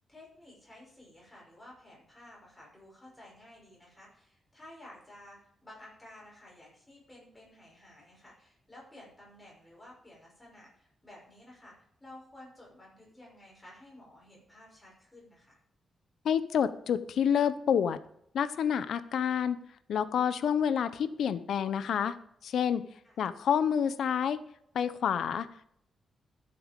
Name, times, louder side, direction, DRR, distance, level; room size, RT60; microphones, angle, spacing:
voice 1, 0.1-15.6 23.0-23.2, left 1 dB, 10° left, -4 dB, 6.0 m, -53 dB
voice 2, 16.2-18.0 18.3-19.6 19.9-22.1 22.4-22.8 23.2-24.4 24.7-25.5, left 8 dB, 75° left, 13 dB, 0.7 m, -28 dB
14.0 x 7.9 x 5.2 m, 0.69 s
wide cardioid pair, 165°, 0 cm